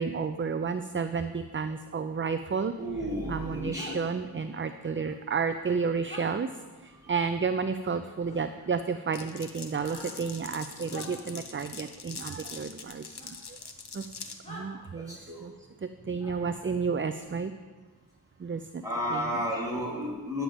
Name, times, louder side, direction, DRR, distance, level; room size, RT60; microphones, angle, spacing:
voice 1, 0.0-2.7 3.3-6.5 6.8-13.4 13.9-14.1 14.5-15.5 16.1-17.5 18.4-18.8 19.1-19.2, right 5 dB, 35° right, 10 dB, 0.4 m, -31 dB
voice 2, 2.8-4.0 5.0-5.1 6.9-7.1 9.7-9.9 15.0-15.5 16.2-16.6 18.8-20.4, equal, 10° right, -6 dB, 3.5 m, -33 dB
sound 1, 3.7-4.0 6.1-6.3 8.2-8.4 9.8-10.1 10.9-11.1 13.2-13.3 14.4-14.7, left 1 dB, 15° left, 2.5 m, -43 dB
Glass, 9.1-14.4, left 5 dB, 85° left, 0.9 m, -43 dB
10.5 x 7.5 x 5.1 m, 1.4 s
wide cardioid pair, 45°, 39 cm